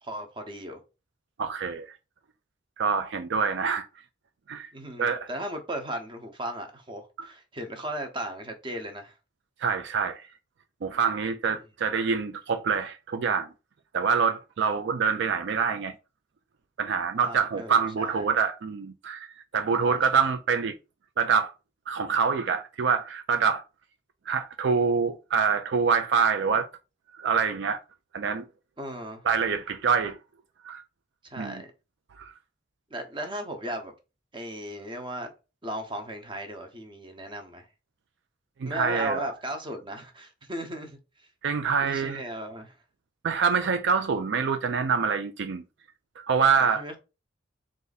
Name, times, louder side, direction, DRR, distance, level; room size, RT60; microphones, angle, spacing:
voice 1, 0.0-0.8 4.7-9.1 17.2-18.3 19.8-20.3 28.8-29.2 31.2-31.7 32.9-33.9 34.3-35.3 35.6-37.7 38.6-41.3 41.8-42.7 46.5-47.0, right 1 dB, 25° right, 0.8 m, -36 dB
voice 2, 1.4-1.9 2.8-3.8 4.5-4.7 5.0-5.3 7.2-7.3 9.6-10.2 10.8-13.5 13.9-15.9 16.8-19.3 19.5-20.7 21.2-21.5 21.9-23.6 24.3-26.7 27.2-27.8 28.1-28.4 29.2-30.2 30.6-30.8 31.4-31.6 32.2-32.3 38.6-39.3 41.4-42.2 43.2-45.6 46.2-46.8, right 6 dB, 65° right, 0.4 m, -25 dB
3.9 x 2.5 x 4.0 m
head